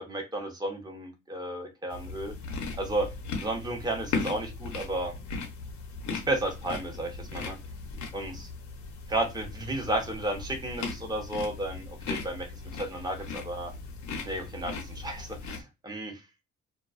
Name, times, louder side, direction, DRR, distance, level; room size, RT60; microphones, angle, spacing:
voice 1, 0.0-2.3 2.8-3.1 3.4-5.2 6.1-7.6 8.1-8.5 9.1-12.5 12.7-13.7 14.2-16.2, right 1 dB, 15° right, 3 dB, 0.9 m, -33 dB
sound 1, 1.9-15.6, left 4 dB, 65° left, 0.8 m, -38 dB
2.2 x 2.2 x 2.4 m, 0.25 s
cardioid pair, 90°, 30 cm